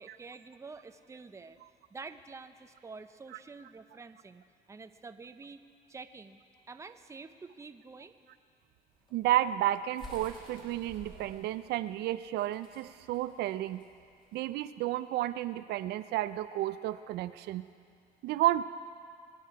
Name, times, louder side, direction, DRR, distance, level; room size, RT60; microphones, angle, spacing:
voice 1, 0.0-1.6 1.9-5.6 5.9-6.4 6.7-8.1, right 4 dB, 15° right, 9 dB, 0.6 m, -48 dB
sound 1, 8.9-14.5, left 1 dB, 30° left, 3.9 m, -52 dB
voice 2, 9.1-13.8 14.3-17.6 18.2-18.6, right 14 dB, 80° right, 13 dB, 0.4 m, -31 dB
22.5 x 10.5 x 4.7 m, 2.3 s
cardioid pair, 110°, 17 cm